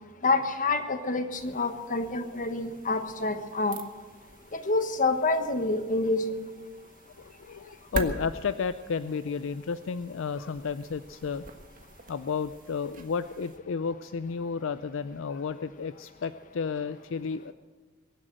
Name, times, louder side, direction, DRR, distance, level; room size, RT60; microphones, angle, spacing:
voice 1, 0.2-3.8 4.5-6.4, left 3 dB, 40° left, 8 dB, 1.3 m, -27 dB
sound 1, 1.4-13.6, right 3 dB, 40° right, 1.4 m, -44 dB
voice 2, 7.2-11.5 12.1-17.5, left 5 dB, 65° left, 13 dB, 0.4 m, -32 dB
22.5 x 7.9 x 7.7 m, 1.4 s
head